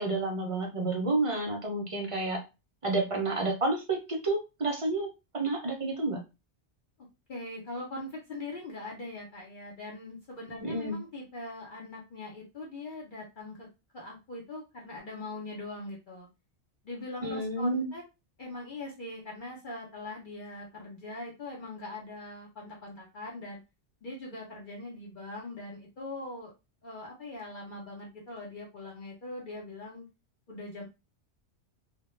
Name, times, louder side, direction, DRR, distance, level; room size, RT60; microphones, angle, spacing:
voice 1, 0.0-2.4 2.8-5.1 5.3-6.2 10.6-11.0 17.2-17.9, right 2 dB, 50° right, 1 dB, 0.4 m, -30 dB
voice 2, 7.3-13.7 13.9-16.3 16.8-18.0 18.4-23.6 24.0-26.5 26.8-30.1 30.5-30.8, left 2 dB, 50° left, -3 dB, 0.8 m, -41 dB
2.2 x 2.1 x 3.0 m, 0.26 s
omnidirectional pair, 1.2 m